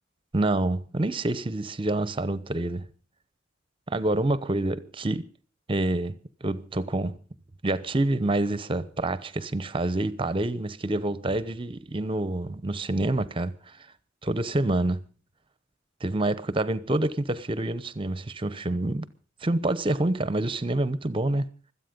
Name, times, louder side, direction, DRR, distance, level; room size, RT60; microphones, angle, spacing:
voice 1, 0.3-2.9 3.9-5.3 5.7-7.2 7.6-13.5 14.2-15.0 16.0-19.1 19.4-21.5, right 2 dB, 30° right, 0.9 m, -27 dB
24.5 x 8.5 x 5.2 m
head